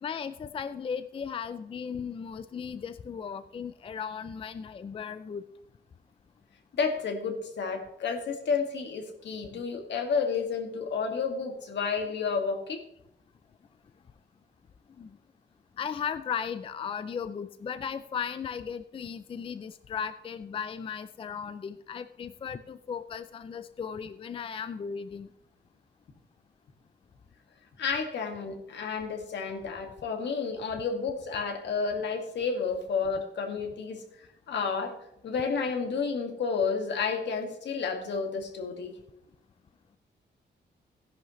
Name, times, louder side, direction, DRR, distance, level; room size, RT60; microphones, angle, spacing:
voice 1, 0.0-5.4 15.0-15.2 15.8-25.3, left 7 dB, 30° left, 12 dB, 0.4 m, -36 dB
voice 2, 6.8-12.8 27.8-34.0 34.5-35.0 35.2-38.9, left 5 dB, 75° left, 4 dB, 2.0 m, -31 dB
16.5 x 10.5 x 3.1 m, 0.79 s
wide cardioid pair, 180°, 18 cm